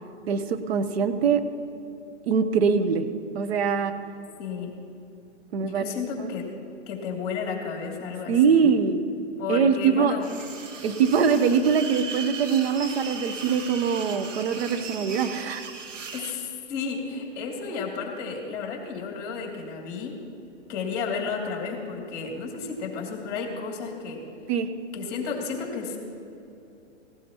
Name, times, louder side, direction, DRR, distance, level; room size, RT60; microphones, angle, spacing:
voice 1, 0.3-1.4 2.3-3.1 3.3-3.9 5.5-5.8 6.2-6.3 8.3-9.0 9.5-10.1 10.8-15.7 24.5-24.7, right 6 dB, 55° right, 9 dB, 1.1 m, -23 dB
voice 2, 4.4-4.7 5.6-6.5 6.9-8.7 9.4-10.3 16.1-20.2 20.7-24.2 24.9-26.0, left 5 dB, 35° left, 0 dB, 2.8 m, -32 dB
sound 1, 10.2-16.4, right 5 dB, 80° right, 1.8 m, -38 dB
17.5 x 16.5 x 3.0 m, 2.7 s
hypercardioid pair, 140°, 37 cm